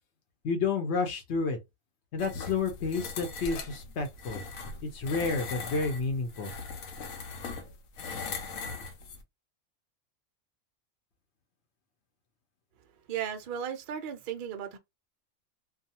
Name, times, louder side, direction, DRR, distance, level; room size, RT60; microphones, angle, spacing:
voice 1, 0.4-1.6 2.1-4.4 4.8-6.5, left 4 dB, 60° left, 0.9 m, -30 dB
sound 1, 2.2-9.2, left 4 dB, 85° left, 1.0 m, -40 dB
voice 2, 13.1-14.8, right 8 dB, 65° right, 0.5 m, -35 dB
2.4 x 2.3 x 2.7 m
omnidirectional pair, 1.4 m